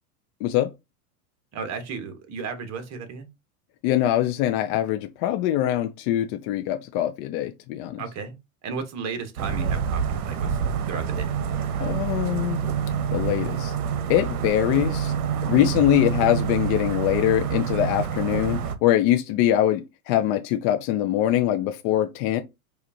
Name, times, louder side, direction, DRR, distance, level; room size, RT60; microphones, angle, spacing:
voice 1, 0.4-0.7 3.8-8.0 11.8-12.6 13.1-13.7 14.1-15.1 15.5-22.4, left 12 dB, 40° left, 0.4 m, -23 dB
voice 2, 1.5-3.3 8.0-8.4 8.6-10.6 10.9-11.3 15.6-15.8, right 5 dB, 35° right, 1.1 m, -34 dB
sound 1, 9.4-18.8, right 7 dB, 80° right, 0.8 m, -27 dB
4.9 x 2.4 x 2.7 m
hypercardioid pair, 115°, 44 cm